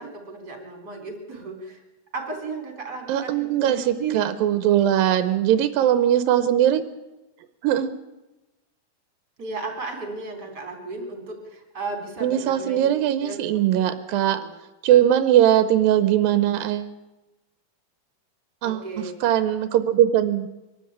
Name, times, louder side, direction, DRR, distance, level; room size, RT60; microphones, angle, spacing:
voice 1, 0.0-1.8 2.1-4.2 9.4-12.9 13.2-14.5 18.6-19.1, right 4 dB, 30° right, 3 dB, 3.9 m, -35 dB
voice 2, 3.1-6.8 7.6-7.9 12.2-14.4 14.8-16.9 18.6-18.9 19.2-20.5, right 11 dB, 85° right, 11 dB, 2.6 m, -20 dB
23.5 x 13.0 x 8.7 m, 1.1 s
omnidirectional pair, 4.0 m